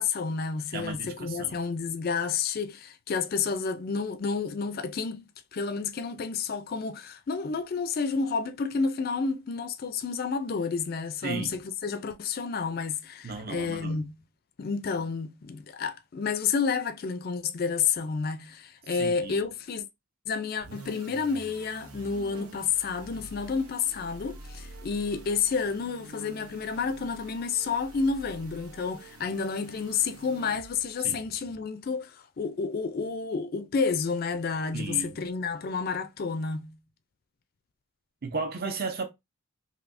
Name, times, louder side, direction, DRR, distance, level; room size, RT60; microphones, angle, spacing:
voice 1, 0.0-5.2 5.5-14.2 14.6-19.8 20.3-36.8, left 5 dB, 45° left, 0.3 m, -30 dB
voice 2, 0.7-1.6 11.2-11.6 13.2-14.0 19.0-19.4 31.0-31.2 34.7-35.2 38.2-39.0, right 4 dB, 45° right, 0.6 m, -35 dB
sound 1, 20.6-31.0, right 2 dB, 85° right, 0.8 m, -47 dB
3.3 x 2.7 x 2.6 m
head